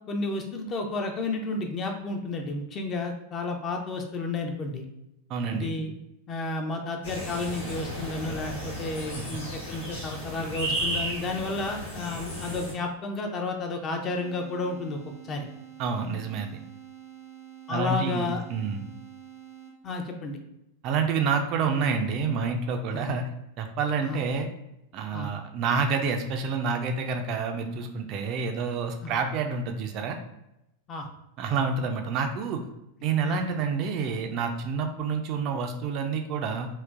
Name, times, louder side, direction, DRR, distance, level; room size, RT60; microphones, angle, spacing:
voice 1, 0.1-4.9 5.5-5.9 6.3-15.0 15.2-15.5 17.7-18.4 19.8-20.4 22.9-23.1 24.0-24.2 25.1-25.3 29.0-29.1 30.9-31.1 33.2-33.4, left 3 dB, 30° left, 3 dB, 0.5 m, -32 dB
voice 2, 5.3-5.8 15.8-16.5 17.7-18.9 20.8-23.3 23.6-24.5 24.9-30.2 31.4-32.6 33.0-36.7, right 5 dB, 40° right, 4 dB, 0.4 m, -28 dB
sound 1, 7.0-12.7, right 1 dB, 65° left, 1.1 m, -34 dB
sound 2, 14.0-20.0, right 11 dB, 80° left, 0.7 m, -47 dB
3.8 x 2.1 x 2.4 m, 0.85 s
figure-of-eight pair, 90°, 0 cm